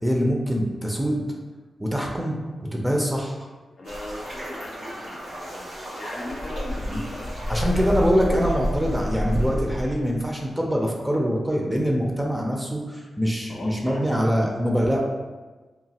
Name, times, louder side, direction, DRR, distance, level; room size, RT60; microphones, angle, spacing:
voice 1, 0.0-1.2 1.8-3.5 6.9-7.0 7.5-15.0, equal, 10° right, -1 dB, 0.5 m, -24 dB
voice 2, 3.8-7.9 13.5-14.1, left 1 dB, 60° left, -2 dB, 0.6 m, -38 dB
sound 1, 3.8-10.3, equal, 90° right, 1.3 m, -30 dB
3.0 x 2.1 x 2.8 m, 1.3 s
cardioid pair, 75°, 0 cm